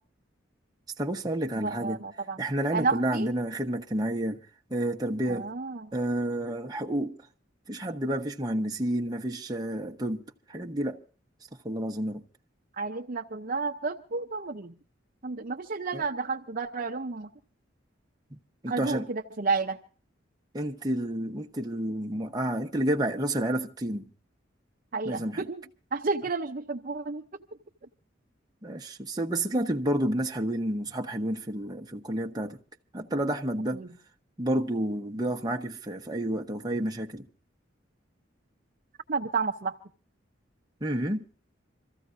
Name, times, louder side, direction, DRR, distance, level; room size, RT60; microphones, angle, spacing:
voice 1, 1.0-2.0 2.4-4.4 4.7-5.5 5.9-7.2 7.7-10.2 10.5-11.0 11.6-12.2 15.9-16.0 18.3-18.4 18.6-19.1 20.5-24.0 25.0-25.4 28.6-32.6 32.9-33.8 34.4-37.3 40.8-41.2, right 1 dB, 20° right, 1.0 m, -30 dB
voice 2, 1.6-2.4 2.7-3.3 5.3-5.9 12.8-14.8 15.2-17.3 18.7-19.8 24.9-25.6 25.9-27.2 33.7-33.9 39.1-39.8, right 4 dB, 45° right, 0.8 m, -31 dB
26.5 x 15.0 x 2.6 m
head